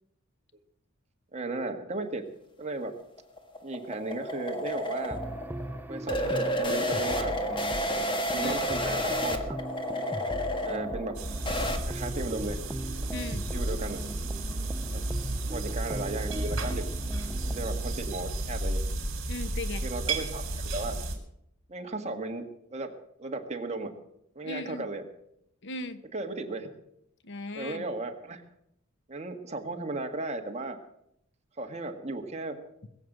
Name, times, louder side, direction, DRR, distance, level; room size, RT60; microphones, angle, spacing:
voice 1, 1.3-2.2 2.6-2.9 3.6-5.2 5.9-7.3 8.2-9.6 10.6-11.2 11.8-12.6 13.5-14.0 14.9-15.0 15.5-16.8 17.4-18.8 19.8-20.4 20.7-21.0 21.7-22.4 22.7-22.9 23.2-23.9 24.4-25.0 26.1-26.7 27.5-28.4 29.1-30.8 31.6-32.6, right 2 dB, 35° right, 3 dB, 1.8 m, -35 dB
sound 1, 2.8-11.8, equal, 25° left, 1.6 m, -31 dB
sound 2, 5.1-17.9, right 1 dB, 10° right, 0.5 m, -39 dB
sound 3, 11.1-21.1, right 2 dB, 65° right, 4.3 m, -33 dB
voice 2, 13.1-13.4 19.3-19.9 24.4-24.9 25.6-26.0 27.2-27.8, left 2 dB, 55° left, 11 dB, 1.0 m, -37 dB
21.0 x 7.8 x 7.9 m, 0.77 s
head